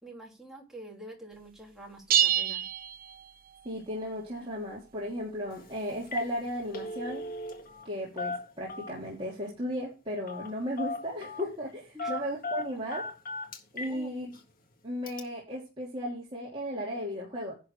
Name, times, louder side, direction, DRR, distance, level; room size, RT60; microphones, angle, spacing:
voice 1, 0.0-2.7 11.9-12.1 13.8-14.2, right 1 dB, ahead, 3.1 m, -47 dB
sound 1, 2.1-3.7, right 10 dB, 40° right, 0.6 m, -27 dB
voice 2, 3.6-7.2 7.8-13.1 13.7-14.3 14.8-17.5, equal, 25° right, 3.1 m, -35 dB
Telephone, 5.5-5.7 6.0-6.3 6.6-7.9 8.2-9.1 10.3-10.5 10.8-11.5 12.0-14.0 14.3-14.4 15.1-15.2, left 2 dB, 40° left, 1.7 m, -37 dB
11.0 x 4.0 x 6.7 m
head